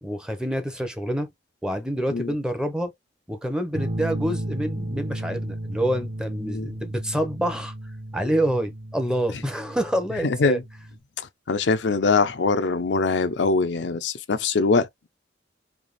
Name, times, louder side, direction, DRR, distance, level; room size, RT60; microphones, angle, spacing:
voice 1, 0.0-1.3 1.6-2.9 3.3-7.7 8.1-10.6, right 1 dB, 5° right, 0.7 m, -27 dB
sound 1, 3.7-11.0, right 1 dB, 40° right, 0.9 m, -34 dB
voice 2, 10.2-10.6 11.5-14.9, left 4 dB, 70° left, 0.5 m, -22 dB
3.4 x 2.8 x 4.0 m
head